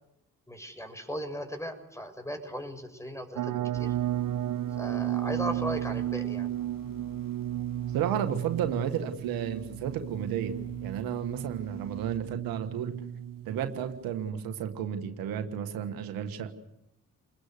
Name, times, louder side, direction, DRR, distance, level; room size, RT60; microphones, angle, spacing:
voice 1, 0.5-3.9 4.8-6.5, equal, 10° left, 7 dB, 7.1 m, -37 dB
sound 1, 3.4-14.3, right 12 dB, 65° right, 1.0 m, -34 dB
sound 2, 3.7-12.2, left 1 dB, 75° left, 4.7 m, -52 dB
voice 2, 7.9-10.5 10.8-12.9 13.4-16.5, right 9 dB, 90° right, 8 dB, 1.6 m, -32 dB
29.5 x 21.0 x 6.7 m, 0.84 s
hypercardioid pair, 40°, 34 cm